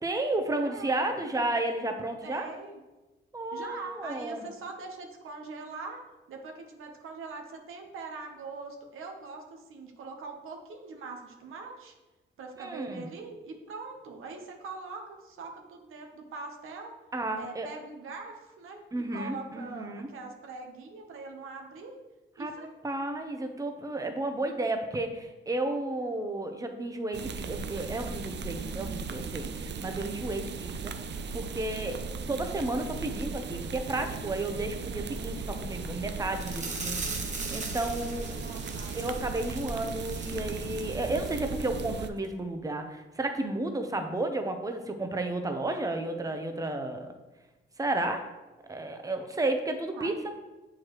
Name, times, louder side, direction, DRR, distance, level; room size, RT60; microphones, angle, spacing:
voice 1, 0.0-2.5 3.3-4.4 12.6-13.1 17.1-17.7 18.9-20.1 22.4-22.5 22.8-30.9 31.3-38.4 38.9-47.1 47.8-48.3 48.7-50.3, right 2 dB, 15° right, 6 dB, 0.7 m, -32 dB
voice 2, 0.6-1.2 2.2-2.7 3.5-6.0 6.3-11.9 12.4-17.0 17.4-18.8 19.1-22.0 22.4-22.7 38.4-39.2 49.9-50.1, right 4 dB, 85° right, 3 dB, 1.0 m, -42 dB
sound 1, 27.1-42.1, right 5 dB, 60° right, 0.5 m, -37 dB
sound 2, 36.4-41.4 41.7-41.8 42.2-42.3, right 3 dB, 35° right, 1.1 m, -40 dB
7.1 x 4.8 x 3.0 m, 1.1 s
cardioid pair, 75°, 21 cm